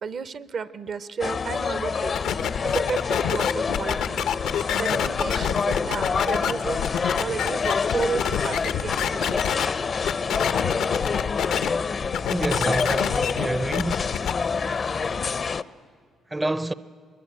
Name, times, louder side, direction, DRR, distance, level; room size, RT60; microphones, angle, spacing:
voice 1, 0.0-4.2 4.8-6.9 7.2-9.6, right 5 dB, 55° right, 0.7 m, -33 dB
sound 1, 1.2-15.6, left 5 dB, 40° left, 0.5 m, -27 dB
sound 2, 2.1-9.7 10.0-11.7 12.0-14.3, left 9 dB, 85° left, 0.7 m, -27 dB
voice 2, 12.3-14.1 16.3-16.7, right 2 dB, 15° right, 0.5 m, -27 dB
22.0 x 21.5 x 8.7 m
cardioid pair, 90°, 0 cm